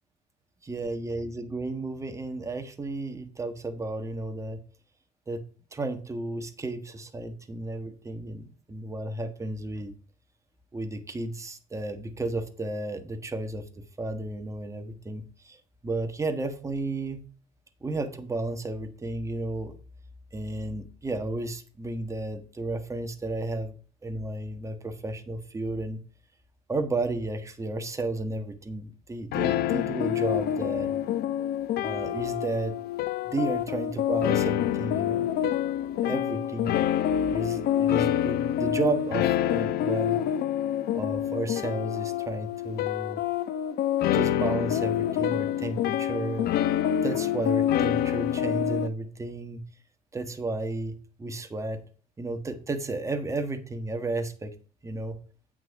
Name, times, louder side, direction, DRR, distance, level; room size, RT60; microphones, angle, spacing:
voice 1, 0.6-4.6 5.3-5.4 5.7-9.9 10.7-13.6 14.0-15.6 15.8-17.2 17.8-19.8 20.3-23.8 24.0-26.0 26.7-30.9 31.8-32.7 33.3-35.2 36.0-36.7 37.3-40.2 40.9-43.2 44.0-46.5 47.0-49.6 50.1-51.8 52.2-54.5 54.8-55.2, right 2 dB, 15° right, 7 dB, 1.4 m, -33 dB
sound 1, 29.3-48.9, left 11 dB, 70° left, 0.8 m, -27 dB
8.3 x 6.2 x 4.7 m, 0.39 s
cardioid pair, 110°, 17 cm